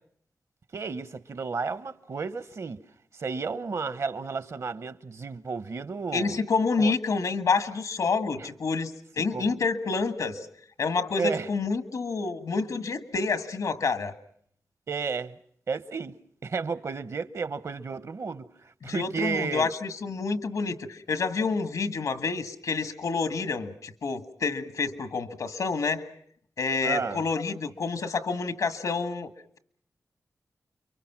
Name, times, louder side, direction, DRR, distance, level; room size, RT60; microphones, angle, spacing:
voice 1, 0.7-2.8 3.2-6.4 6.8-6.9 8.4-8.5 9.3-9.6 11.2-11.5 14.9-15.3 15.7-16.2 16.4-18.5 18.8-19.7 26.8-27.2, right 5 dB, 65° right, 1.0 m, -32 dB
voice 2, 6.1-10.5 10.8-14.1 18.8-26.1 26.6-29.3, left 4 dB, 85° left, 1.6 m, -28 dB
29.5 x 23.5 x 6.0 m
wide cardioid pair, 90°, 6 cm